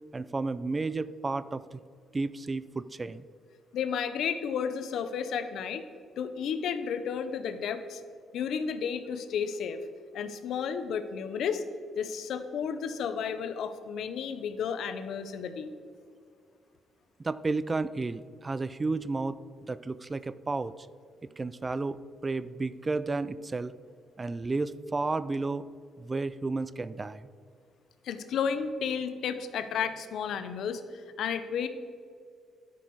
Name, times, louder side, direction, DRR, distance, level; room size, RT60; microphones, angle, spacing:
voice 1, 0.1-1.8 2.1-3.3 17.2-19.4 19.7-20.7 21.4-23.7 24.2-25.6 26.0-27.3, right 3 dB, 25° right, 16 dB, 0.4 m, -32 dB
voice 2, 3.7-5.8 6.2-8.0 8.3-9.8 10.1-11.6 12.0-15.7 28.0-31.7, left 7 dB, 75° left, 11 dB, 0.7 m, -32 dB
11.5 x 6.1 x 4.7 m, 2.2 s
cardioid pair, 90°, 0 cm